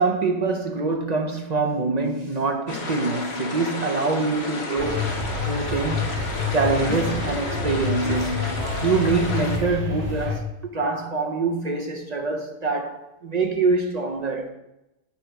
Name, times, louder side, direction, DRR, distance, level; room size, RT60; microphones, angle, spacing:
voice 1, 0.0-5.0 5.5-6.1 6.5-8.6 8.8-14.5, right 3 dB, 45° right, 0.6 m, -25 dB
sound 1, 2.7-9.6, left 2 dB, 60° left, 1.2 m, -32 dB
sound 2, 4.8-10.4, left 4 dB, 65° right, 1.9 m, -28 dB
7.1 x 3.9 x 4.5 m
omnidirectional pair, 1.3 m